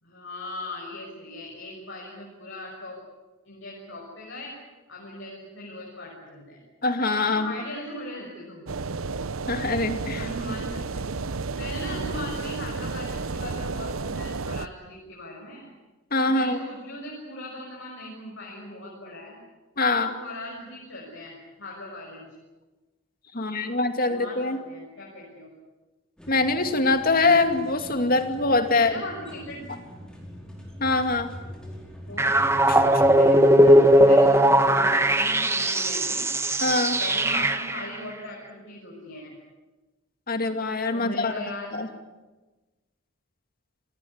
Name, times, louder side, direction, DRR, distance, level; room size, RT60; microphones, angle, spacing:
voice 1, 0.0-3.0 3.4-4.5 4.9-6.6 7.3-8.7 10.1-11.1 11.5-15.7 16.3-19.4 19.9-21.3 21.6-22.3 23.3-23.8 24.1-25.5 28.7-29.8 32.1-36.2 37.0-39.4 40.9-41.8, left 1 dB, 60° left, -2 dB, 6.1 m, -39 dB
voice 2, 6.8-7.5 9.5-10.2 16.1-16.6 19.8-20.1 23.3-24.6 26.3-29.0 30.8-31.3 32.7-32.8 36.6-37.0 40.3-41.3 41.7-41.9, left 3 dB, 45° left, 7 dB, 2.5 m, -23 dB
sound 1, 8.7-14.7, right 4 dB, 80° right, 0.9 m, -32 dB
sound 2, 26.2-33.2, equal, 5° left, 5.0 m, -43 dB
sound 3, 32.2-37.9, right 1 dB, 10° right, 1.4 m, -19 dB
28.0 x 18.5 x 9.7 m, 1.2 s
head